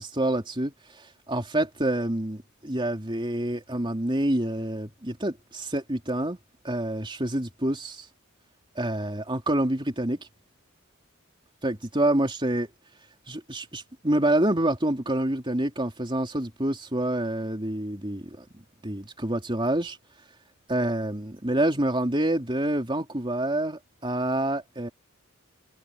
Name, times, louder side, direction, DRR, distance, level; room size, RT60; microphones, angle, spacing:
voice 1, 0.0-6.4 6.6-8.1 8.8-10.2 11.6-12.7 13.3-18.5 18.8-20.0 20.7-24.9, right 1 dB, 25° right, 3.5 m, -27 dB
head